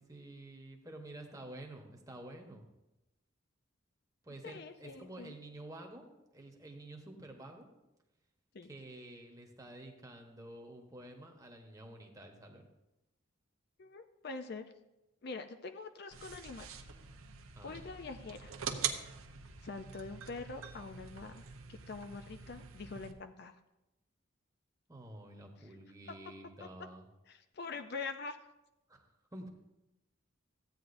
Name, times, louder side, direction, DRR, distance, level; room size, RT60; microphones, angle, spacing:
voice 1, 0.0-2.7 4.2-6.1 6.3-7.7 8.6-12.7 17.5-17.8 24.9-27.1 28.9-29.0 29.3-29.5, right 1 dB, 15° right, 2 dB, 1.0 m, -50 dB
voice 2, 4.4-5.3 8.5-8.7 13.8-14.7 15.2-16.7 17.6-18.5 19.6-21.4 21.7-23.6 27.3-28.4, left 4 dB, 50° left, 8 dB, 0.4 m, -44 dB
Desk Lamp Switch On, 16.1-23.1, right 7 dB, 80° right, 0.8 m, -44 dB
14.5 x 9.0 x 2.6 m, 0.96 s
head